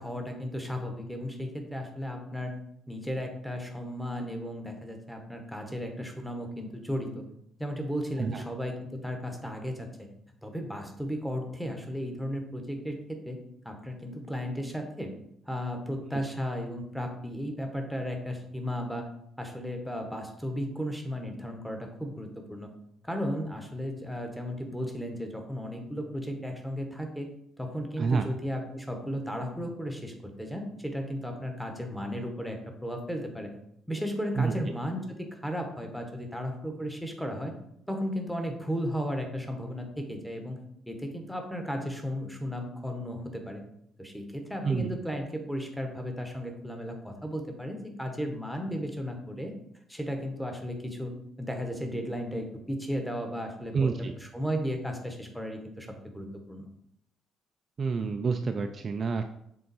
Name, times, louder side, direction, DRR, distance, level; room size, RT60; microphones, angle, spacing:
voice 1, 0.0-2.5 2.9-7.3 7.6-10.1 10.4-13.4 13.6-15.1 15.5-19.1 19.4-22.7 23.0-27.3 27.6-33.5 33.9-37.5 37.9-40.6 40.9-43.6 44.0-49.5 49.9-51.1 51.4-55.9 56.1-56.7, equal, ahead, 3 dB, 0.9 m, -35 dB
voice 2, 53.7-54.1 57.8-59.2, right 5 dB, 30° right, 5 dB, 0.3 m, -28 dB
6.8 x 3.8 x 4.0 m, 0.73 s
cardioid pair, 155°, 0 cm